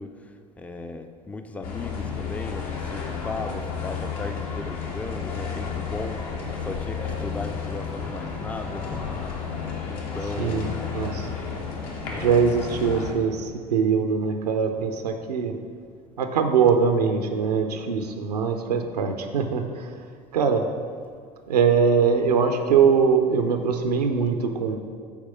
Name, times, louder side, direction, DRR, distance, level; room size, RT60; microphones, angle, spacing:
voice 1, 0.0-10.9 12.1-12.5, left 2 dB, 5° left, 8 dB, 0.4 m, -37 dB
sound 1, 1.6-13.1, left 6 dB, 65° left, 1.2 m, -32 dB
voice 2, 10.4-11.3 12.1-15.5 16.2-20.0 20.3-20.6 21.5-24.8, right 6 dB, 75° right, 5 dB, 0.6 m, -22 dB
7.2 x 4.7 x 5.5 m, 2.1 s
figure-of-eight pair, 65°, 21 cm